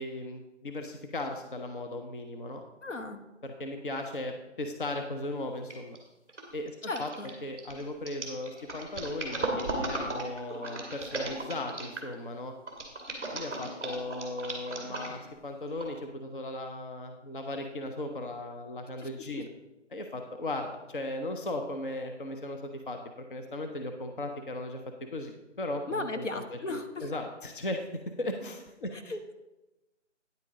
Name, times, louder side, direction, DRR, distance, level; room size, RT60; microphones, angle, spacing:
voice 1, 0.0-2.6 3.4-6.0 6.5-7.1 7.4-12.5 13.2-19.5 19.9-24.8 25.1-27.8 28.2-29.2, left 1 dB, 45° left, 5 dB, 0.7 m, -37 dB
voice 2, 2.8-3.2 6.9-7.3 19.0-19.3 25.9-27.1 28.9-29.3, left 2 dB, 75° left, 6 dB, 1.2 m, -36 dB
sound 1, 5.7-6.0 6.3-12.1 12.7-15.3 15.8-15.9, right 2 dB, ahead, 1.7 m, -36 dB
9.7 x 8.8 x 3.7 m, 1.0 s
figure-of-eight pair, 165°, 37 cm